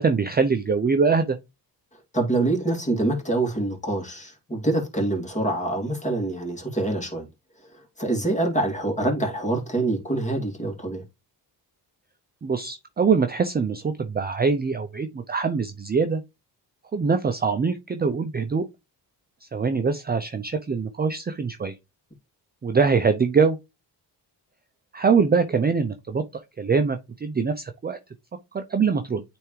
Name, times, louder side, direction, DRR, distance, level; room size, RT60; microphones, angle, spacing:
voice 1, 0.0-1.4 12.4-16.2 16.9-18.6 19.4-21.7 22.6-23.6 24.9-26.2 26.6-28.0 28.5-29.2, right 5 dB, 25° right, 0.6 m, -23 dB
voice 2, 2.1-7.3 8.0-11.0, right 2 dB, 15° left, 2.5 m, -25 dB
8.9 x 3.5 x 3.2 m
cardioid pair, 85°, 42 cm